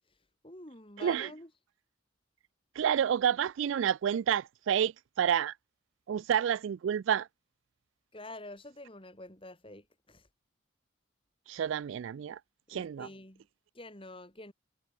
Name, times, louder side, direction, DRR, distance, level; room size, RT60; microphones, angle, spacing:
voice 1, 0.4-1.5 8.1-10.2 12.7-13.5 13.8-14.5, left 2 dB, 25° left, 3.5 m, -47 dB
voice 2, 1.0-1.3 2.8-5.5 6.1-7.3 11.5-12.4 12.7-13.1, right 8 dB, 65° right, 0.3 m, -29 dB
head